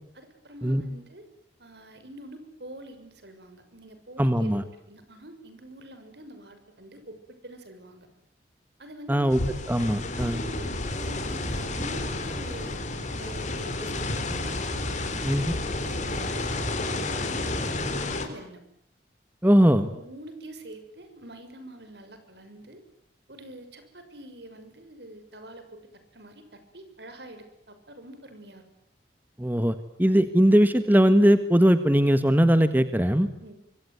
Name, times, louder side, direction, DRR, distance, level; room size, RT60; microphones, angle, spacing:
voice 1, 0.1-1.3 1.6-8.1 8.8-9.4 10.2-10.7 11.0-14.6 15.0-15.4 15.8-16.4 16.7-17.5 17.8-18.6 19.9-22.8 23.3-25.8 26.1-28.7 33.4-33.5, right 1 dB, 65° right, 9 dB, 6.4 m, -45 dB
voice 2, 4.2-4.6 9.1-9.4 9.7-10.4 15.2-15.5 19.4-19.9 29.4-33.3, equal, 10° right, 10 dB, 1.5 m, -20 dB
sound 1, 9.3-18.3, left 2 dB, 45° left, 4.4 m, -31 dB
25.0 x 25.0 x 9.5 m, 0.72 s
head